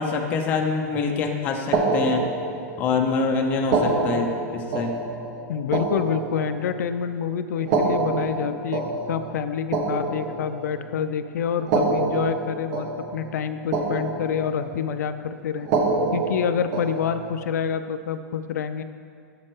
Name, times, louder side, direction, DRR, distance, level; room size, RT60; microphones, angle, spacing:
voice 1, 0.0-2.2 2.8-4.9, left 4 dB, 20° left, 3 dB, 0.5 m, -25 dB
sound 1, 1.7-3.0 3.6-6.9 7.6-10.9 11.6-13.5 13.7-14.8 15.6-17.4, right 3 dB, 30° right, 0.6 m, -26 dB
voice 2, 5.5-8.8 9.1-15.7 16.1-18.8, left 7 dB, 75° left, 10 dB, 0.4 m, -27 dB
7.6 x 6.9 x 4.6 m, 2.2 s
supercardioid pair, 175°, 9 cm